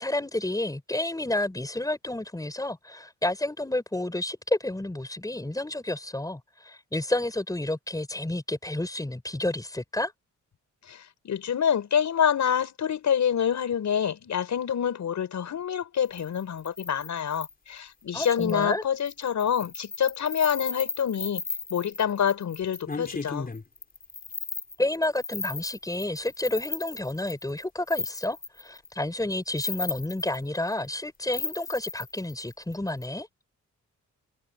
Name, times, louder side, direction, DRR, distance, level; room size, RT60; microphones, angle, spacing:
voice 1, 0.0-10.1 18.1-18.8 24.8-33.3, left 1 dB, 10° left, 5.9 m, -30 dB
voice 2, 10.9-21.4 21.7-23.5, left 8 dB, 65° left, 5.9 m, -27 dB
sound 1, 16.1-17.5 18.2-18.6 19.0-28.9 29.4-31.0 31.3-33.1, left 3 dB, 30° left, 4.9 m, -36 dB
cardioid pair, 80°, 31 cm